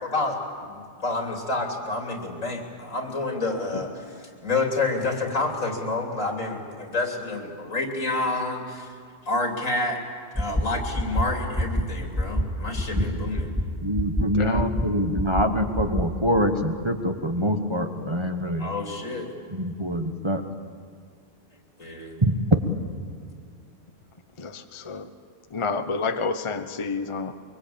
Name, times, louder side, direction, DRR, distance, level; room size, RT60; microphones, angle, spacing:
voice 1, 0.0-3.9 4.4-8.9 9.3-10.0 10.4-13.6 18.6-19.3 21.8-22.2, left 2 dB, 85° left, 2 dB, 3.5 m, -28 dB
sound 1, 10.3-10.6 10.9-11.2 11.5-11.8 12.1-12.4 12.7-13.0 13.3-13.6 13.9-14.2 14.5-14.8 15.1-15.4 15.7-16.0, equal, 5° right, 2.8 m, -24 dB
voice 2, 13.8-18.7 19.5-20.4 22.2-22.4, equal, 25° right, 5 dB, 1.2 m, -25 dB
voice 3, 14.3-14.7 24.4-25.1 25.5-27.3, left 4 dB, 25° left, 8 dB, 1.0 m, -29 dB
23.5 x 23.5 x 8.7 m, 2.2 s
omnidirectional pair, 1.3 m